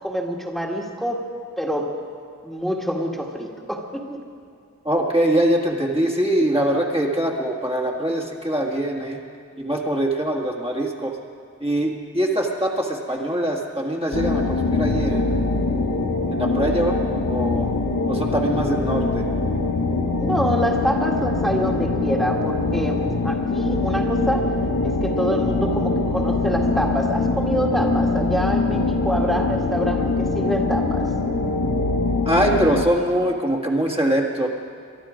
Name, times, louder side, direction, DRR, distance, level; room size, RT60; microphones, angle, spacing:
voice 1, 0.0-1.3 1.6-2.0 2.4-4.2 20.1-24.5 24.8-31.1, equal, ahead, 0 dB, 1.9 m, -26 dB
voice 2, 4.9-9.2 9.6-11.1 11.6-15.4 16.3-17.0 17.3-17.7 18.1-19.2 32.3-34.5, right 1 dB, 20° right, -2 dB, 1.8 m, -23 dB
sound 1, 14.1-32.8, left 3 dB, 75° left, 1.3 m, -23 dB
24.0 x 11.0 x 5.1 m, 2.4 s
wide cardioid pair, 45°, 30 cm